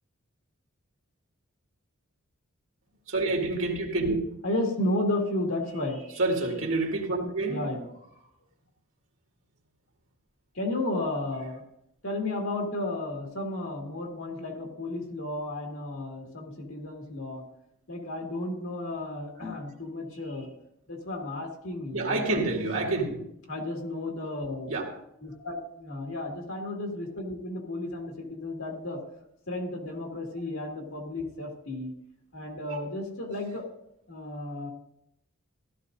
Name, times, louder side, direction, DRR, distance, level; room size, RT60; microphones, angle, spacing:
voice 1, 3.1-4.2 6.1-7.8 20.2-20.4 21.9-23.2 24.7-24.9 32.7-32.8, right 2 dB, 60° right, 2.1 m, -28 dB
voice 2, 4.4-6.0 7.5-7.9 10.5-11.6 12.0-17.4 17.9-20.5 20.9-22.5 23.5-24.7 25.2-29.0 29.5-31.9 32.3-33.6 34.1-34.7, left 2 dB, 65° left, 2.2 m, -33 dB
15.5 x 13.0 x 2.6 m
head